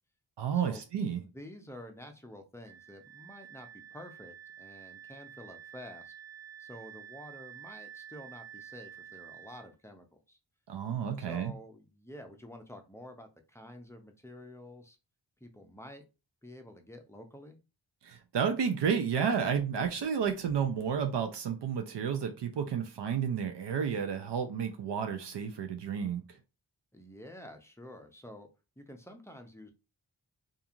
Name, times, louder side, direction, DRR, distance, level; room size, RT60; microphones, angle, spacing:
voice 1, 0.4-1.2 10.7-11.5 18.0-26.4, right 7 dB, 70° right, 0.5 m, -31 dB
voice 2, 1.2-6.1 6.6-10.4 11.2-15.0 15.4-16.0 16.4-17.6 26.9-28.5 28.8-29.7, left 1 dB, 5° left, 0.5 m, -49 dB
Wind instrument woodwind instrument, 2.6-9.7, right 9 dB, 20° right, 0.8 m, -50 dB
2.8 x 2.5 x 2.4 m
cardioid pair, 60°, 44 cm